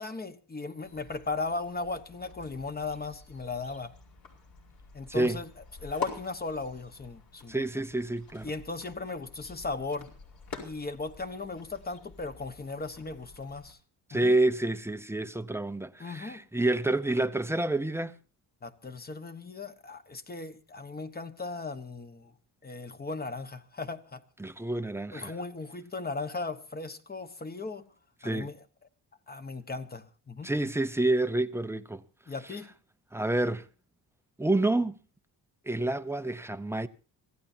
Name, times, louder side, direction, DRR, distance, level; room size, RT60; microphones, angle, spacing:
voice 1, 0.0-3.9 4.9-5.5 5.8-7.6 8.4-10.1 10.6-13.8 14.1-14.3 16.0-16.4 18.6-22.3 22.6-24.2 25.1-27.9 28.2-28.6 29.3-30.5 32.3-32.7, left 3 dB, 25° left, 1.3 m, -37 dB
sound 1, 0.8-13.7, left 5 dB, 55° left, 4.9 m, -47 dB
voice 2, 5.1-5.4 7.5-8.5 14.1-18.1 24.4-25.3 28.2-28.5 30.4-32.0 33.1-33.7 34.4-35.0 35.7-36.9, right 2 dB, 5° right, 0.7 m, -28 dB
25.5 x 15.5 x 2.7 m
cardioid pair, 110°, 41 cm